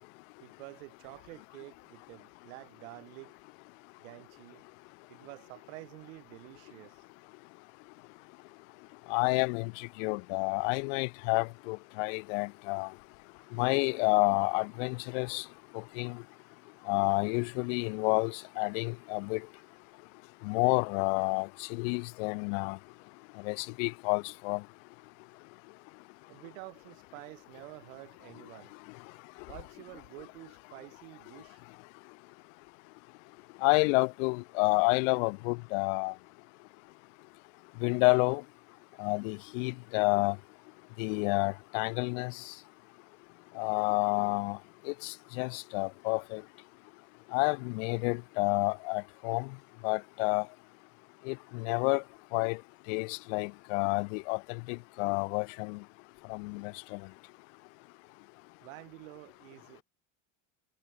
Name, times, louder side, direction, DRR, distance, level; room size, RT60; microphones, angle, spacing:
voice 1, 0.4-3.4 4.0-4.6 5.1-7.0 26.3-28.7 29.3-31.6 58.6-59.8, right 25 dB, 85° right, 2.5 m, -49 dB
voice 2, 9.1-12.9 13.6-15.4 16.0-16.2 16.9-19.4 20.4-22.8 23.4-24.6 33.6-36.1 37.8-38.4 39.0-40.4 41.0-42.5 43.6-44.6 44.9-46.4 47.3-49.5 49.8-50.5 51.3-52.0 52.3-52.6 52.9-55.8 56.3-57.0, left 33 dB, 70° left, 0.5 m, -29 dB
cardioid pair, 160°, 39 cm